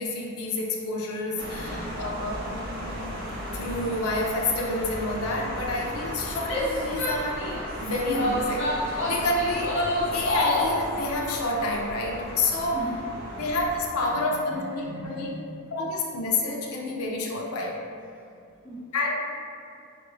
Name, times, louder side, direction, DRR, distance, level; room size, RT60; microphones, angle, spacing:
voice 1, 0.0-2.4 3.0-3.1 3.5-9.9 10.1-12.8 13.3-15.3 15.7-17.8 18.9-19.3, left 2 dB, 85° left, -1 dB, 0.6 m, -29 dB
sound 1, 1.4-13.9, equal, 45° right, 0.7 m, -36 dB
Female speech woman speaking / Yell, 6.4-7.7 8.1-10.8, left 1 dB, 55° left, 1.0 m, -27 dB
voice 2, 12.6-13.0 13.3-13.5 14.1-15.6 18.1-18.9, right 1 dB, 5° right, -9 dB, 0.9 m, -41 dB
5.2 x 2.5 x 3.1 m, 2.4 s
head